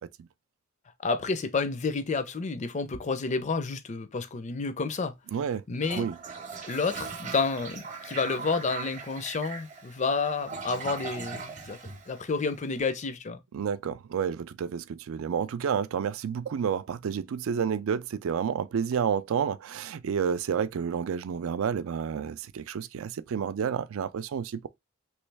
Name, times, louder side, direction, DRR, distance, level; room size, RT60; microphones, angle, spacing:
voice 1, 1.0-5.1 5.7-6.1 6.6-11.8 12.1-13.4, left 4 dB, 35° left, 0.4 m, -30 dB
voice 2, 5.3-5.6 6.0-6.2 13.5-24.7, right 7 dB, 75° right, 0.4 m, -30 dB
Toilet flush, 5.7-12.7, right 5 dB, 35° right, 0.8 m, -40 dB
3.1 x 3.1 x 3.3 m
head